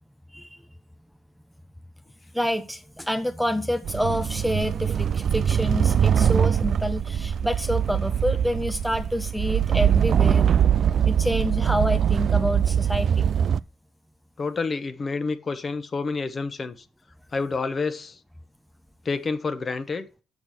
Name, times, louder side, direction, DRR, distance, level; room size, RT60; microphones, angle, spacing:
voice 1, 2.3-10.4 11.1-13.2, equal, ahead, 0.6 m, -27 dB
sound 1, 3.8-13.6, right 8 dB, 55° right, 0.3 m, -22 dB
voice 2, 14.4-16.8 17.3-18.2 19.0-20.1, left 4 dB, 35° left, 1.0 m, -28 dB
7.3 x 4.8 x 6.1 m
cardioid pair, 90°, 0 cm